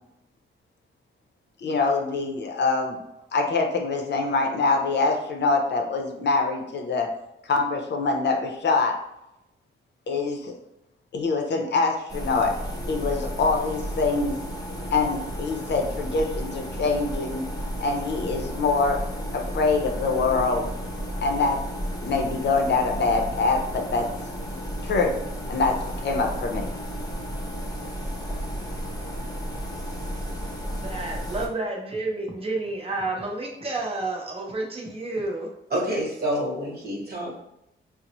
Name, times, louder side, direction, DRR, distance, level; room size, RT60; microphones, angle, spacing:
voice 1, 1.6-3.0 3.3-7.1 7.4-9.0 10.1-10.5 11.1-12.5 12.9-14.4 14.9-17.4 17.8-19.0 19.3-20.7 21.2-21.6 22.0-24.1 24.8-25.2 25.5-26.7, left 3 dB, 55° left, 3 dB, 0.5 m, -24 dB
sound 1, 12.1-31.5, equal, 15° left, 0.8 m, -33 dB
voice 2, 30.8-35.5 35.9-36.0, right 2 dB, 25° right, -1 dB, 0.7 m, -30 dB
voice 3, 35.7-37.4, right 1 dB, 50° right, -2 dB, 1.2 m, -28 dB
3.9 x 2.0 x 2.9 m, 0.83 s
cardioid pair, 95°, 21 cm